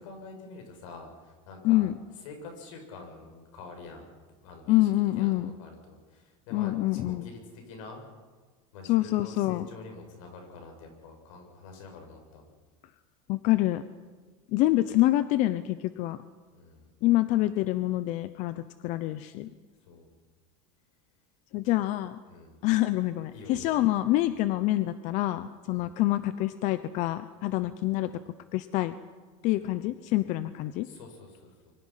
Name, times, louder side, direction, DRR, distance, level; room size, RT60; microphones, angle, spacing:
voice 1, 0.0-1.9 2.2-4.9 5.1-8.0 8.7-12.4 16.5-16.9 19.8-20.1 21.6-21.7 22.3-22.6 23.3-23.8 24.2-24.3 25.7-25.8 27.4-27.6 29.5-29.7 30.8-31.7, left 3 dB, 85° left, 3 dB, 6.8 m, -47 dB
voice 2, 1.6-2.0 4.7-5.5 6.5-7.3 8.9-9.7 13.3-13.8 14.5-16.2 17.0-19.5 21.5-22.2 22.6-28.1 28.5-28.9 29.4-30.9, left 16 dB, 50° left, 13 dB, 0.8 m, -26 dB
26.5 x 24.0 x 5.8 m, 1.4 s
cardioid pair, 160°, 16 cm